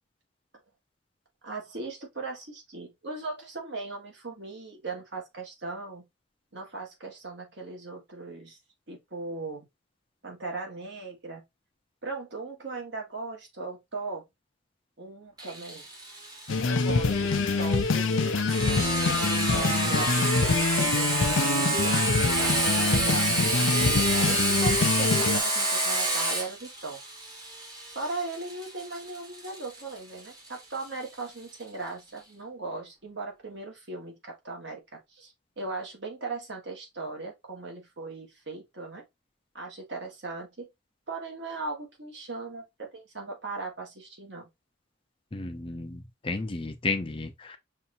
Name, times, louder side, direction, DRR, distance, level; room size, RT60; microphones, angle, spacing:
voice 1, 1.4-6.0 6.5-8.6 8.9-9.7 10.2-11.4 12.0-14.2 15.0-15.9 16.6-18.5 19.0-21.9 22.4-23.3 24.1-27.0 27.9-39.0 39.5-40.7 41.1-44.5, right 3 dB, 60° right, 1.6 m, -38 dB
Sawing, 15.4-30.8, right 2 dB, 20° right, 1.1 m, -29 dB
sound 1, 16.5-25.4, left 4 dB, 75° left, 0.6 m, -25 dB
voice 2, 45.3-47.6, left 3 dB, 25° left, 0.5 m, -33 dB
5.6 x 2.6 x 2.7 m
head